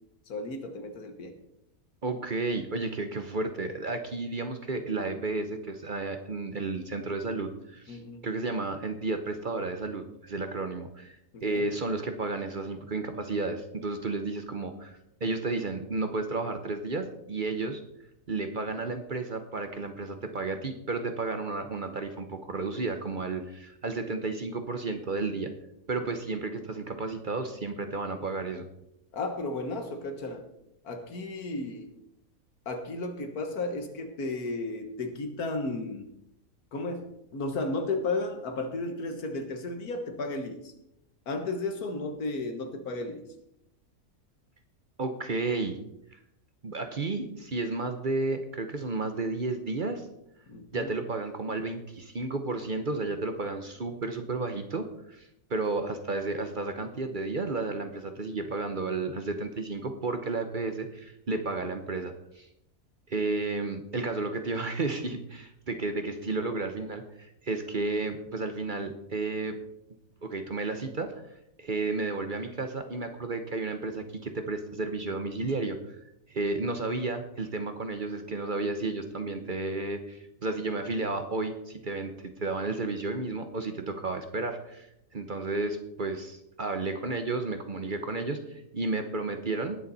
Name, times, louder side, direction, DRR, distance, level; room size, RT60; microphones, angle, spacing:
voice 1, 0.3-1.4 7.9-8.2 11.3-11.7 29.1-30.5 30.8-31.9 32.7-36.1 36.7-40.7 41.3-43.2 50.5-50.9, left 2 dB, 90° left, 6 dB, 1.9 m, -34 dB
voice 2, 2.0-11.2 11.4-17.8 18.3-25.5 25.9-28.7 45.0-45.8 46.1-46.2 46.6-50.1 50.7-62.5 63.1-69.6 70.2-71.1 71.6-76.0 76.3-82.1 82.4-84.9 85.1-89.8, right 3 dB, 40° right, 7 dB, 0.9 m, -32 dB
19.0 x 7.1 x 4.1 m, 0.80 s
omnidirectional pair, 1.5 m